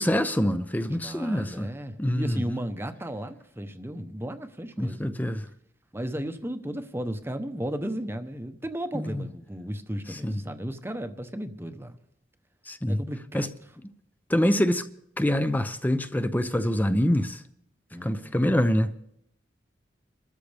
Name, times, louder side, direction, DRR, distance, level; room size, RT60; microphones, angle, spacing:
voice 1, 0.0-1.7 2.0-2.6 4.8-5.5 8.9-9.3 10.1-10.4 12.7-13.0 13.3-13.5 14.3-14.9 15.2-17.4 18.0-18.9, equal, 10° left, 0.7 m, -25 dB
voice 2, 0.9-5.0 5.9-12.0 12.9-13.5 17.9-18.3, equal, 15° right, 1.0 m, -34 dB
27.0 x 13.5 x 3.4 m
head